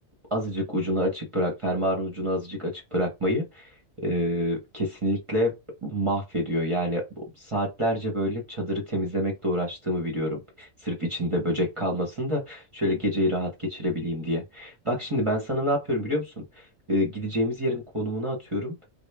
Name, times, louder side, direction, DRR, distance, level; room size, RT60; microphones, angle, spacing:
voice 1, 0.3-3.7 4.0-5.5 5.8-18.7, equal, 30° right, 0.7 m, -27 dB
3.2 x 2.2 x 3.3 m
omnidirectional pair, 1.4 m